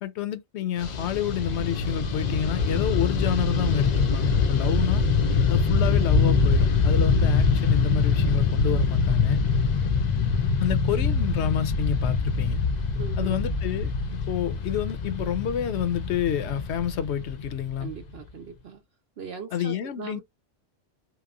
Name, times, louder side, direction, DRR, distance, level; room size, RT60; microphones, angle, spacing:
voice 1, 0.0-5.0 5.5-9.4 10.6-12.6 13.2-13.9 14.3-17.9 19.5-20.2, left 9 dB, 75° left, 0.9 m, -29 dB
Fixed-wing aircraft airplane, 0.8-18.2, left 4 dB, 50° left, 0.5 m, -24 dB
sound 1, 5.8-10.9, right 6 dB, 10° right, 0.9 m, -49 dB
voice 2, 12.9-13.5 17.8-18.8 19.2-20.2, right 7 dB, 70° right, 0.8 m, -39 dB
2.9 x 2.0 x 2.4 m
omnidirectional pair, 1.2 m